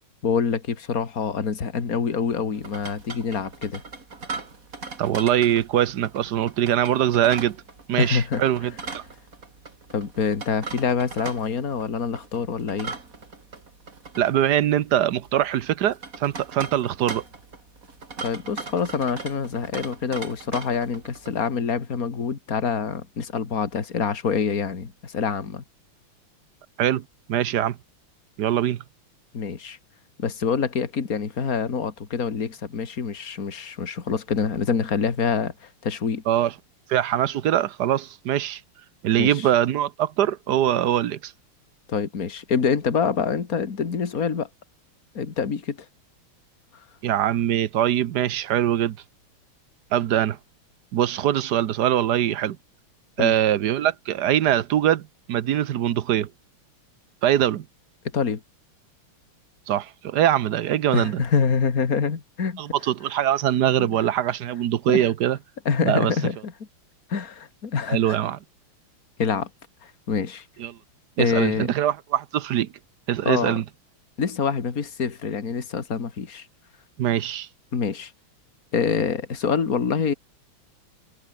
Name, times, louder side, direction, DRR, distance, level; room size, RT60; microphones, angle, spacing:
voice 1, 0.2-3.8 8.0-8.4 9.9-12.9 18.2-25.6 29.3-29.8 30.2-36.2 39.2-39.5 41.9-44.5 45.1-45.8 53.2-53.3 58.1-58.4 60.9-62.6 63.8-64.0 64.9-65.1 65.7-66.5 67.1-68.2 69.2-69.5 69.8-70.5 71.2-71.7 73.2-73.6 74.2-76.5 77.7-78.1 78.7-80.1, left 6 dB, 40° left, 2.5 m, -26 dB
sound 1, 2.5-21.5, right 4 dB, 40° right, 3.3 m, -39 dB
voice 2, 5.0-7.6 7.9-9.0 14.2-17.2 26.8-27.0 27.3-27.8 28.4-28.8 36.3-36.5 36.9-38.6 39.0-41.3 47.0-49.0 49.9-50.4 50.9-52.6 53.2-56.3 57.2-57.6 59.7-61.2 62.6-65.4 65.8-66.1 67.9-68.4 70.6-70.8 71.2-72.7 73.1-73.6 77.0-77.5, right 11 dB, 60° right, 1.2 m, -22 dB
omnidirectional pair, 2.4 m